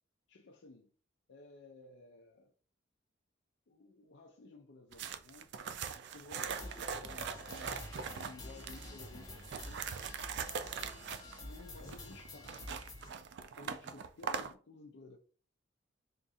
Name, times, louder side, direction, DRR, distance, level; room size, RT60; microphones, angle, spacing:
voice 1, 0.3-0.9 1.3-2.5 3.7-5.5 6.1-10.0 11.4-12.8 13.6-15.2, left 3 dB, 65° left, 0.5 m, -55 dB
sound 1, 4.9-8.9 9.4-14.5, right 6 dB, 65° right, 0.4 m, -41 dB
sound 2, 6.4-13.1, left 1 dB, 20° left, 1.0 m, -49 dB
3.6 x 2.5 x 4.1 m
head